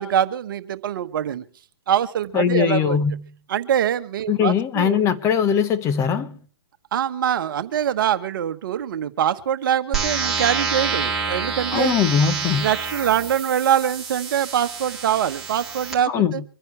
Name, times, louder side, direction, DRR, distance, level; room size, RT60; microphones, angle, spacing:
voice 1, 0.0-1.4 1.9-3.0 3.5-5.0 6.9-11.9 12.6-16.1, right 9 dB, 55° right, 1.3 m, -23 dB
voice 2, 2.3-3.2 4.3-6.4 11.7-12.7 16.1-16.4, left 7 dB, 20° left, 1.1 m, -20 dB
sound 1, 9.9-15.9, right 5 dB, 5° right, 4.2 m, -28 dB
25.0 x 10.5 x 3.4 m
hypercardioid pair, 135°, 14 cm